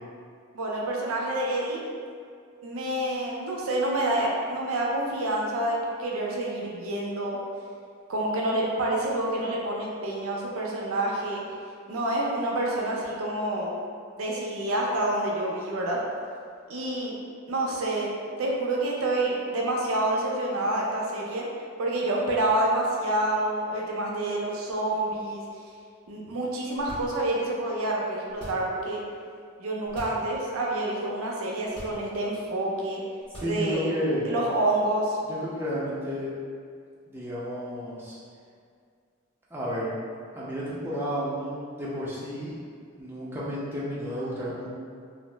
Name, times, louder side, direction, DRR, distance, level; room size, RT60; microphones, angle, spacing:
voice 1, 0.5-1.8 2.6-7.4 8.1-11.4 11.9-13.7 14.2-16.0 16.7-17.1 17.5-18.1 18.4-21.4 21.8-25.4 26.1-29.0 29.6-33.0 33.4-33.9 34.2-35.2, right 1 dB, 80° right, -2 dB, 0.5 m, -28 dB
sound 1, 26.7-27.5 28.3-28.9 29.8-30.3 30.7-30.8 31.7-32.3 33.2-33.9, equal, 25° left, 0.9 m, -43 dB
voice 2, 33.4-34.3 35.3-36.3 37.1-38.2 39.5-39.9 40.3-42.6 43.0-44.7, equal, 10° right, -8 dB, 0.5 m, -32 dB
2.6 x 2.0 x 3.2 m, 2.2 s
head